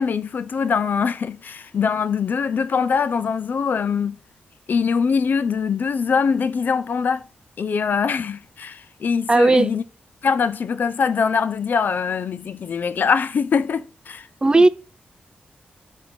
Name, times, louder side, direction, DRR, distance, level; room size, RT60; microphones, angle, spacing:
voice 1, 0.0-4.2 4.7-7.3 7.6-9.8 10.2-14.3 14.6-14.7, left 6 dB, 65° left, 0.4 m, -23 dB
voice 2, 9.3-9.7 14.4-14.7, right 2 dB, 25° right, 0.4 m, -15 dB
7.7 x 3.3 x 5.1 m
cardioid pair, 70°, 3 cm